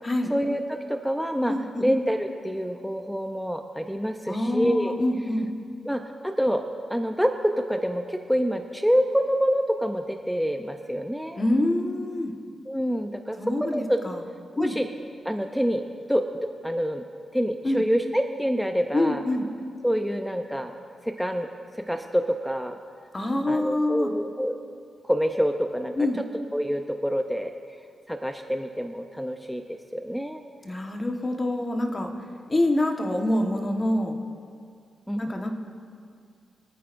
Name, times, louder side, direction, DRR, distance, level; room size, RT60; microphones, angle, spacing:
voice 1, 0.3-5.0 5.9-6.6 6.9-11.4 12.7-14.0 14.6-14.9 15.2-15.8 16.1-16.3 16.6-17.0 17.3-19.2 19.8-20.7 21.0-21.5 21.7-22.8 23.5-24.6 25.0-25.9 26.5-27.5 28.1-30.4 35.1-35.3, equal, ahead, 4 dB, 0.7 m, -26 dB
voice 2, 1.5-1.9 4.3-5.5 11.4-12.3 13.4-14.2 14.6-14.8 17.6-17.8 18.9-19.5 23.1-24.1 25.9-26.2 30.6-32.1 32.5-34.2 35.2-35.5, left 1 dB, 30° left, 3 dB, 1.4 m, -26 dB
24.5 x 9.0 x 2.6 m, 2.2 s
cardioid pair, 70°, 0 cm